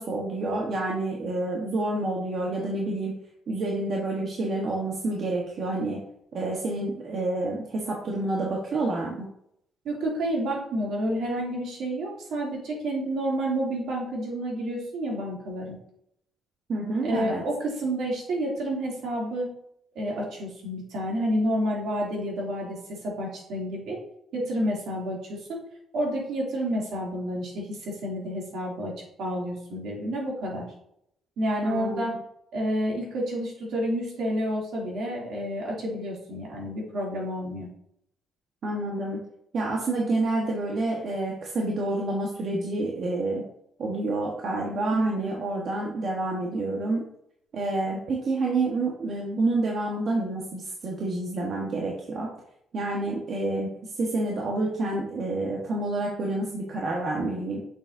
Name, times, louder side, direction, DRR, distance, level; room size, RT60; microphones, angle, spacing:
voice 1, 0.0-3.1 3.5-6.0 6.3-9.3 16.7-17.4 31.6-32.2 38.6-39.2 39.5-43.5 43.8-47.0 47.5-52.3 52.7-57.6, right 2 dB, 55° right, -2 dB, 1.3 m, -28 dB
voice 2, 9.8-15.8 17.0-19.5 19.9-24.0 24.3-25.6 25.9-30.7 31.4-32.1 32.5-37.7 44.9-45.3, equal, 75° right, -3 dB, 2.7 m, -29 dB
6.9 x 6.6 x 2.7 m, 0.73 s
cardioid pair, 90°, 0 cm